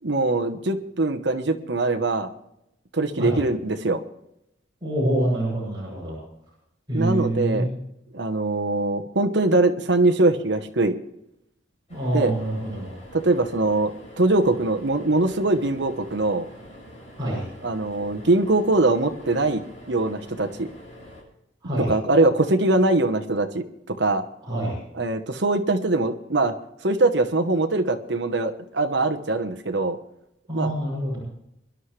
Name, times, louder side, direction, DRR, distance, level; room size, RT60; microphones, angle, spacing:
voice 1, 0.0-2.3 2.9-4.0 6.9-7.7 8.1-11.0 12.1-12.3 13.1-13.9 14.2-16.5 17.6-20.7 21.9-24.2 25.0-26.5 26.8-30.0 30.5-30.7, right 2 dB, 70° right, 8 dB, 1.2 m, -22 dB
voice 2, 4.8-6.2 6.9-7.7 11.9-13.0 17.2-17.4 21.6-21.9 24.4-24.8 30.5-31.2, right 1 dB, 25° right, -7 dB, 7.5 m, -26 dB
sound 1, 11.9-21.2, equal, 40° left, 7.2 m, -45 dB
24.5 x 11.5 x 3.4 m, 0.81 s
head